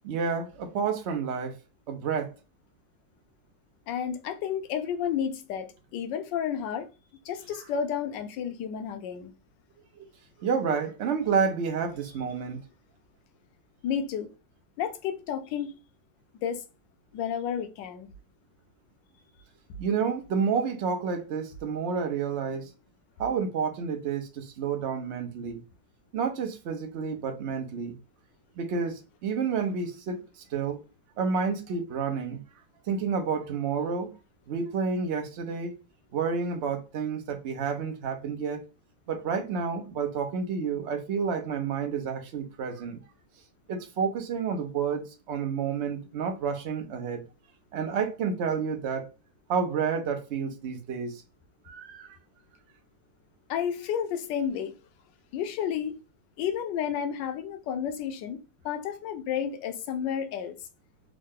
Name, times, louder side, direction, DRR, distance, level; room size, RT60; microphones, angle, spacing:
voice 1, 0.0-1.6 1.9-2.3 10.0-10.1 10.4-12.6 19.8-22.7 23.2-25.6 26.1-28.0 28.6-30.8 31.2-32.4 32.9-34.1 34.5-35.7 36.1-38.6 39.1-43.0 43.7-47.2 47.7-49.1 49.5-51.2 51.6-52.1, right 6 dB, 80° right, 0.6 m, -30 dB
voice 2, 3.9-6.9 7.2-9.3 13.8-14.3 14.8-15.8 16.4-16.6 17.1-18.1 53.5-54.7 55.3-56.0 56.4-58.4 58.6-60.5, left 8 dB, 75° left, 1.2 m, -31 dB
3.7 x 2.1 x 3.6 m
omnidirectional pair, 2.1 m